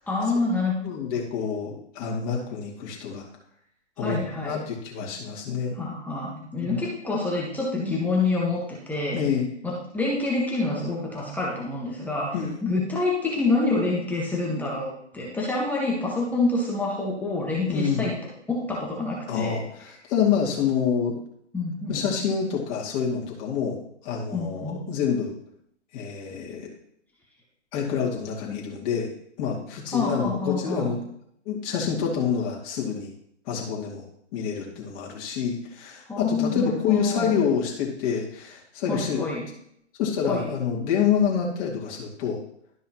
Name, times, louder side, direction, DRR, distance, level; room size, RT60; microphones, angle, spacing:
voice 1, 0.1-0.7 4.0-4.5 5.7-9.2 9.6-12.3 12.6-18.1 18.5-19.6 21.5-22.1 24.3-24.9 29.9-30.9 36.1-37.4 38.9-39.4 40.3-40.5, left 3 dB, 5° left, -4 dB, 1.3 m, -27 dB
voice 2, 0.8-3.2 4.0-5.8 6.6-6.8 9.1-9.5 12.3-12.5 17.7-18.1 19.3-21.1 21.9-23.8 24.0-25.3 25.9-26.7 27.7-29.1 29.4-31.0 31.5-33.1 33.5-34.0 34.3-39.3 40.0-42.4, left 7 dB, 30° left, -3 dB, 2.4 m, -27 dB
12.5 x 5.5 x 3.0 m, 0.71 s
figure-of-eight pair, 130°, 35 cm